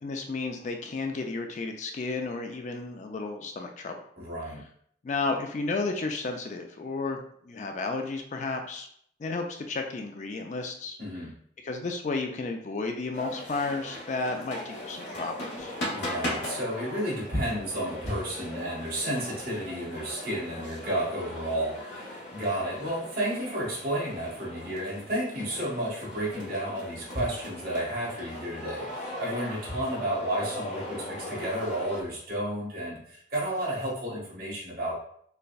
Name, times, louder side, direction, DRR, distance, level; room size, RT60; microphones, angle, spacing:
voice 1, 0.0-4.0 5.0-8.9 9.2-11.0 11.6-15.7, left 3 dB, 40° left, 4 dB, 0.3 m, -32 dB
voice 2, 4.2-4.6 11.0-11.3 15.9-34.9, right 1 dB, 50° right, -6 dB, 1.6 m, -32 dB
sound 1, 13.1-32.0, left 1 dB, 70° left, 1.1 m, -39 dB
6.5 x 2.2 x 2.3 m, 0.65 s
head